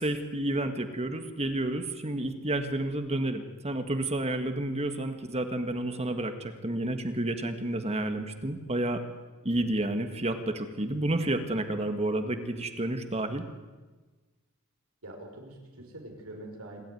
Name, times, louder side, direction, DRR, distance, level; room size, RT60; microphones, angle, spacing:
voice 1, 0.0-9.0 9.4-13.5, right 1 dB, 30° right, 8 dB, 1.8 m, -30 dB
voice 2, 15.0-16.8, right 1 dB, 90° right, 2 dB, 5.7 m, -44 dB
27.0 x 13.0 x 9.4 m, 1.3 s
head